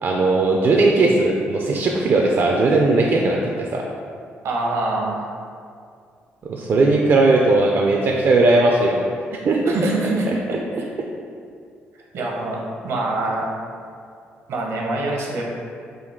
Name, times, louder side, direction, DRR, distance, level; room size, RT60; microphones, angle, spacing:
voice 1, 0.0-3.8 6.5-9.0 9.4-9.6, right 2 dB, 50° right, -1 dB, 0.3 m, -18 dB
voice 2, 4.4-5.3 9.6-10.3 12.1-12.6 12.8-13.5 14.5-15.4, right 2 dB, 75° right, -2 dB, 0.7 m, -24 dB
3.8 x 2.3 x 3.5 m, 2.3 s
supercardioid pair, 65°, 5 cm